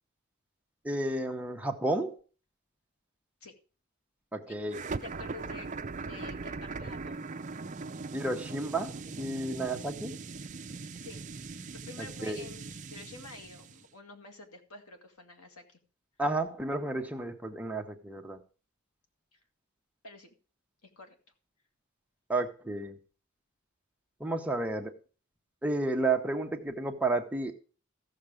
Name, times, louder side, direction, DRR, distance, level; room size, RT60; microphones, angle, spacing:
voice 1, 0.8-2.2 4.3-4.8 8.1-10.2 12.0-12.4 16.2-18.4 22.3-23.0 24.2-24.9 25.6-27.5, right 2 dB, 5° right, 3 dB, 0.9 m, -32 dB
sound 1, 4.7-13.8, right 4 dB, 35° right, 0.5 m, -40 dB
voice 2, 5.0-5.7 6.0-7.3 11.0-11.2 11.9-15.8 19.3-19.4 20.0-20.3 20.8-21.2, left 3 dB, 85° left, 5 dB, 2.0 m, -48 dB
14.5 x 6.6 x 4.9 m, 0.37 s
head